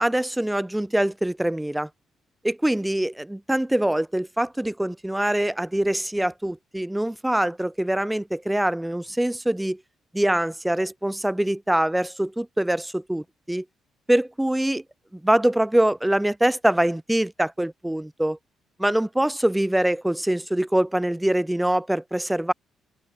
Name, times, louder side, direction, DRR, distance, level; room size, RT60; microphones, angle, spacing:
voice 1, 0.0-1.9 2.4-9.8 10.1-13.6 14.1-14.8 15.1-18.4 18.8-22.5, right 1 dB, 5° right, 0.3 m, -24 dB
open air
cardioid pair, 90°, 0 cm